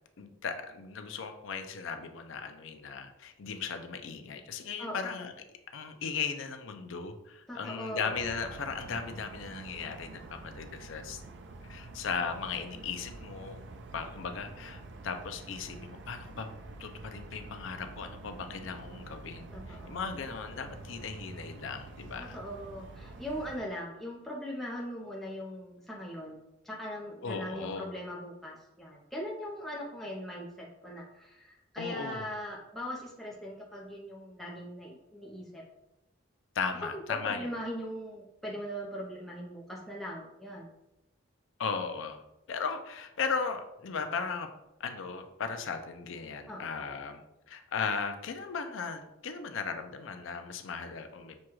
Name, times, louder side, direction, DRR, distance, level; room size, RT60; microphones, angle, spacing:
voice 1, 0.2-5.3 5.7-11.2 11.7-13.6 13.9-16.5 16.8-22.4 27.2-27.9 31.8-32.3 36.6-37.5 41.6-42.2 42.5-44.5 44.8-47.2 47.5-51.4, left 5 dB, 70° left, 7 dB, 0.4 m, -37 dB
voice 2, 4.8-5.2 7.5-8.1 19.5-20.1 22.2-35.6 36.9-40.7 46.5-46.8, equal, ahead, -4 dB, 0.5 m, -40 dB
sound 1, 8.1-23.6, right 3 dB, 60° right, 0.4 m, -47 dB
6.2 x 2.3 x 3.0 m, 0.90 s
head